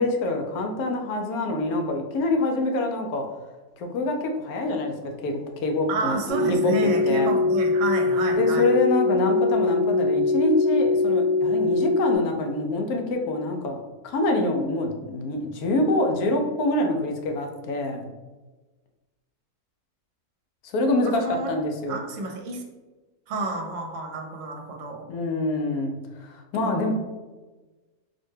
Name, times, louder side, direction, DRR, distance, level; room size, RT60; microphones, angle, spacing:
voice 1, 0.0-3.2 3.8-6.2 6.5-6.7 7.0-7.3 8.4-13.8 14.0-18.1 20.6-22.0 25.1-26.9, left 2 dB, 85° left, 3 dB, 1.1 m, -26 dB
voice 2, 5.9-8.7 21.0-21.5 21.9-22.6 23.3-25.1 26.6-26.9, right 2 dB, 65° right, 2 dB, 1.0 m, -30 dB
sound 1, 6.3-12.2, left 3 dB, 45° left, 0.9 m, -22 dB
4.2 x 2.2 x 3.1 m, 1.2 s
omnidirectional pair, 1.5 m